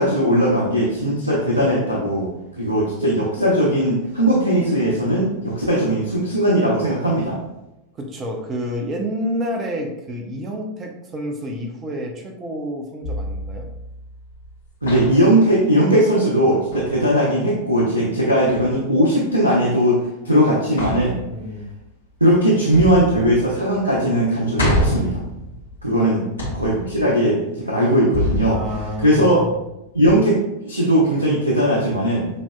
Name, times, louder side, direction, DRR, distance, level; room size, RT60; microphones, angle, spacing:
voice 1, 0.0-2.3 2.6-7.4 14.8-21.2 22.2-25.2 25.8-26.2 26.5-28.6 29.0-29.4 29.9-32.3, equal, 85° right, -5 dB, 0.8 m, -18 dB
voice 2, 8.0-13.7 21.3-21.7 26.0-26.1 28.5-29.5, equal, 25° right, 3 dB, 0.7 m, -29 dB
sound 1, 13.0-14.5 14.9-15.4 16.7-17.1 18.5-18.8 20.8-21.6 22.7-23.7 24.1-24.2 24.6-26.0 26.4-27.2 28.1-29.5 30.1-30.2, left 1 dB, 75° left, 1.3 m, -27 dB
6.2 x 2.8 x 2.3 m, 0.89 s
figure-of-eight pair, 90°, 0 cm